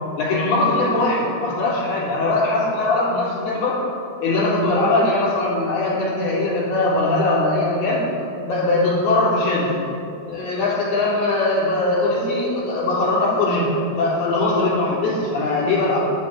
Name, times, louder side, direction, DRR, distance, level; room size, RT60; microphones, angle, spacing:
voice 1, 0.2-3.8 4.2-8.0 8.4-9.7 10.3-16.0, left 2 dB, 55° left, -6 dB, 5.2 m, -20 dB
15.5 x 11.5 x 4.2 m, 2.7 s
omnidirectional pair, 5.6 m